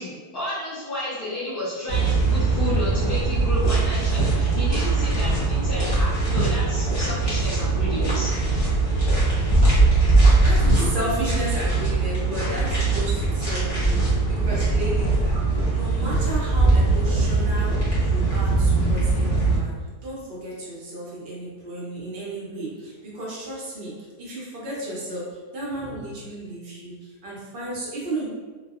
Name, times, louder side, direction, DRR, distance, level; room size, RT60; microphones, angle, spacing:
voice 1, 0.0-8.3, left 1 dB, 75° left, -10 dB, 0.4 m, -31 dB
sound 1, 1.9-19.6, right 3 dB, 25° left, 0.7 m, -21 dB
voice 2, 10.4-28.3, right 1 dB, 70° right, -6 dB, 0.4 m, -33 dB
3.1 x 2.0 x 2.3 m, 1.4 s
omnidirectional pair, 1.8 m